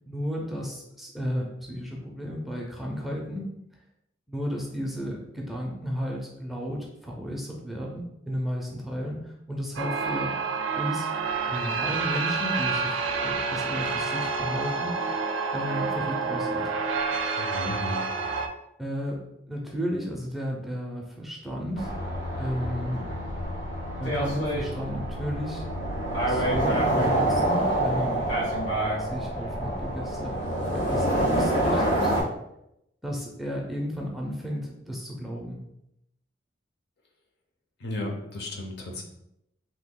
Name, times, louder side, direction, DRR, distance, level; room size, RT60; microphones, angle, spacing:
voice 1, 0.1-3.5 4.3-10.3 10.8-11.1 11.5-15.0 15.5-16.7 18.8-22.0 22.4-23.1 24.0-25.7 26.3-28.2 29.0-32.2 33.0-35.6, equal, ahead, -1 dB, 0.4 m, -33 dB
sound 1, 9.8-18.5, right 4 dB, 90° right, 0.4 m, -28 dB
voice 2, 17.4-18.0 37.8-39.0, left 1 dB, 60° left, 1 dB, 0.6 m, -34 dB
sound 2, 21.8-32.2, right 1 dB, 85° left, 1.1 m, -27 dB
2.8 x 2.3 x 3.6 m, 0.81 s
head